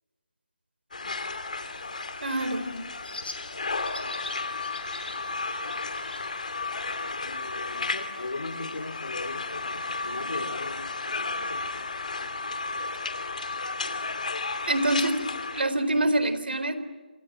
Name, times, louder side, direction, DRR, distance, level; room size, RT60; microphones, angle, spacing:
sound 1, 0.9-15.6, left 3 dB, 50° left, 2.6 m, -33 dB
Bird, 1.7-10.7, left 3 dB, 70° left, 7.6 m, -46 dB
voice 1, 2.2-2.7 14.7-15.3 15.5-16.8, right 1 dB, 75° right, 11 dB, 4.0 m, -25 dB
voice 2, 7.2-11.9, left 3 dB, 90° left, 11 dB, 3.9 m, -39 dB
28.5 x 26.5 x 7.6 m, 1.3 s
hypercardioid pair, 180°, 5 cm